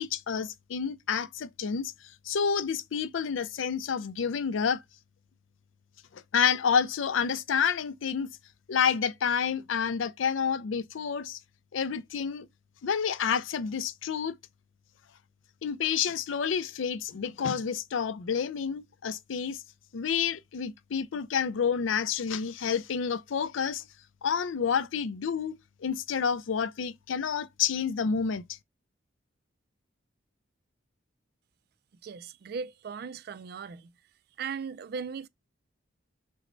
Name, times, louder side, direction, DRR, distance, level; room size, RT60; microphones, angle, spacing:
voice 1, 0.0-1.9 2.3-4.8 6.1-8.3 8.7-11.4 11.7-12.5 12.8-14.4 15.6-19.6 19.9-23.8 24.2-28.6, left 7 dB, 85° left, 0.4 m, -29 dB
voice 2, 32.0-33.9 34.4-35.3, right 6 dB, 55° right, 0.3 m, -38 dB
6.1 x 2.1 x 3.8 m
head